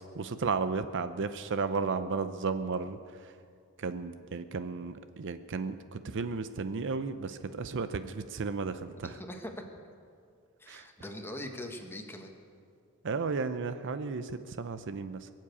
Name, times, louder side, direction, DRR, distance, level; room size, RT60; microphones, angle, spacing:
voice 1, 0.1-3.3 3.8-9.2 10.7-10.9 13.0-15.3, right 4 dB, 55° right, 11 dB, 0.6 m, -34 dB
voice 2, 9.0-9.7 10.6-12.3, left 1 dB, 10° left, 4 dB, 1.4 m, -42 dB
22.5 x 7.5 x 8.4 m, 2.2 s
head